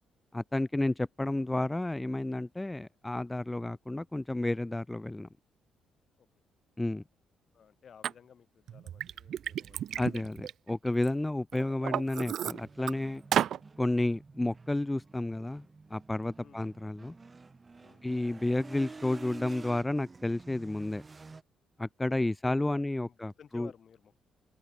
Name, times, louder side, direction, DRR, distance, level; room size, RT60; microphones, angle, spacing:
voice 1, 0.3-5.3 6.8-7.0 10.0-13.2 13.8-17.1 18.0-21.0 21.8-23.7, left 2 dB, 10° left, 0.5 m, -31 dB
voice 2, 7.5-10.3 13.3-13.4 16.4-16.6 17.8-18.2 22.1-24.2, left 7 dB, 55° left, 6.0 m, -57 dB
Liquid, 8.0-8.1 8.7-11.1 11.5-12.9 13.3-13.6, right 10 dB, 70° right, 0.7 m, -32 dB
sound 1, 12.4-21.4, right 3 dB, 25° right, 2.5 m, -50 dB
open air
cardioid pair, 90°, 0 cm